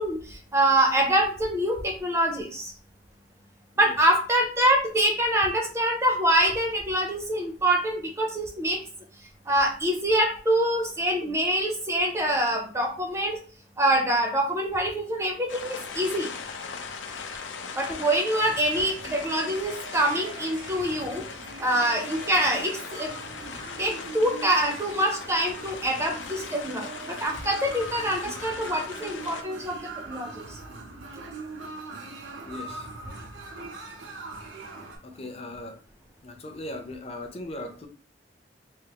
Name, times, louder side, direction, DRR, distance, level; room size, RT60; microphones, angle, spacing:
voice 1, 0.0-2.7 3.8-8.8 9.5-13.4 13.8-16.3 17.8-21.2 21.6-23.1 23.4-23.5 23.8-29.8 30.1-30.6, right 1 dB, 15° right, 2 dB, 0.5 m, -25 dB
sound 1, 15.5-29.4, left 5 dB, 85° left, 0.5 m, -39 dB
sound 2, 18.3-35.0, right 3 dB, 90° right, 0.7 m, -42 dB
voice 2, 32.4-32.9 35.0-35.8 36.2-37.9, left 1 dB, 35° left, 5 dB, 0.5 m, -38 dB
3.3 x 2.4 x 2.8 m, 0.41 s
head